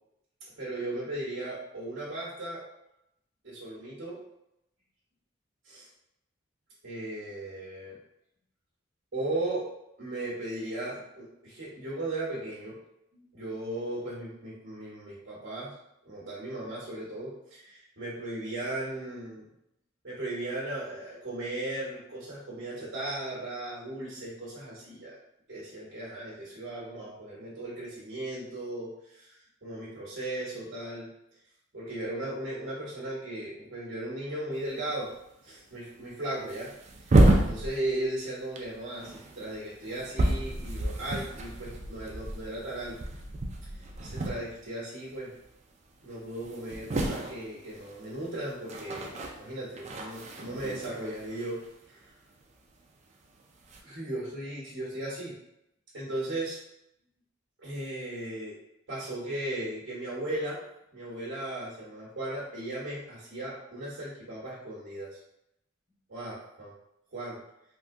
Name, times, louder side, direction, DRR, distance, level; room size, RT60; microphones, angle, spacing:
voice 1, 0.6-2.6 3.4-4.2 5.6-5.9 6.8-8.0 9.1-12.8 13.1-15.7 16.0-19.5 20.0-25.2 25.5-31.1 31.7-35.1 35.4-36.7 37.1-37.2 37.4-43.0 44.0-45.3 46.0-51.6 51.9-52.1 53.8-55.3 55.9-56.6 57.6-58.6 58.9-60.6 60.9-65.2 66.1-66.7 67.1-67.4, right 1 dB, 65° right, -6 dB, 1.1 m, -36 dB
sound 1, 34.7-34.8 35.1-35.2 35.9-36.0 36.4-38.2 38.6-44.8 45.1-45.4 45.8-45.9 46.1-52.4 53.3-53.8, right 1 dB, 35° right, 0.4 m, -30 dB
3.5 x 2.6 x 2.6 m, 0.83 s
head